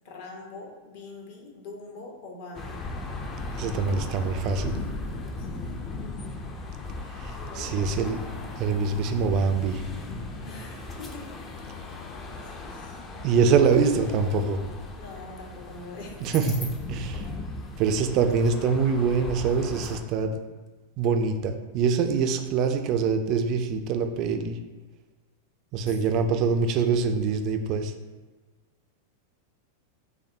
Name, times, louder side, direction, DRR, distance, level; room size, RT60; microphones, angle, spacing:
voice 1, 0.0-2.8 5.4-5.8 7.4-7.9 10.4-11.7 12.4-13.0 14.9-16.1 25.9-26.5, left 3 dB, 55° left, 0 dB, 0.8 m, -44 dB
sound 1, 2.5-20.0, left 2 dB, 25° left, 0.4 m, -37 dB
voice 2, 3.6-4.8 7.2-8.2 8.6-9.8 13.2-14.6 16.2-17.3 17.8-20.3 21.0-24.6 25.7-27.9, right 5 dB, 40° right, 7 dB, 0.3 m, -24 dB
5.7 x 2.1 x 2.6 m, 1.3 s
figure-of-eight pair, 90°, 0 cm